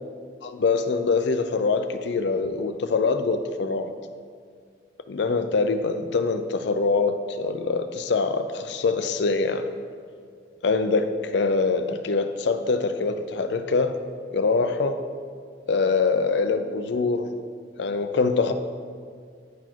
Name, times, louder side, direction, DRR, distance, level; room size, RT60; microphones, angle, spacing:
voice 1, 0.4-3.9 5.1-9.7 10.6-11.1 11.3-13.9 14.3-15.0 15.7-17.3 17.8-18.5, left 4 dB, 70° left, 9 dB, 0.4 m, -24 dB
10.0 x 4.1 x 4.5 m, 2.1 s
head